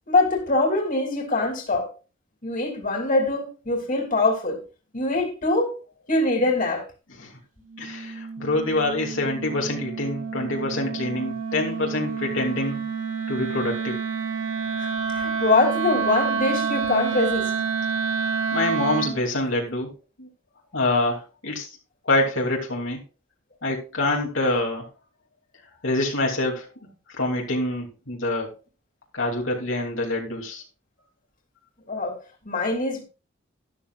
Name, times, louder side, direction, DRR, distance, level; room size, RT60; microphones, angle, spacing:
voice 1, 0.1-1.9 2.4-4.6 4.9-5.7 6.1-6.9 14.8-17.6 31.9-32.2 32.4-33.0, left 2 dB, 45° left, 2.9 m, -23 dB
Wind instrument woodwind instrument, 7.7-19.2, right 6 dB, 80° right, 2.9 m, -28 dB
voice 2, 7.8-12.8 13.3-14.0 18.5-19.9 20.2-20.3 20.7-21.7 22.1-23.0 23.6-24.9 25.8-26.7 27.2-28.5 29.1-30.6, left 2 dB, 75° left, 2.8 m, -26 dB
12.5 x 12.0 x 2.4 m
head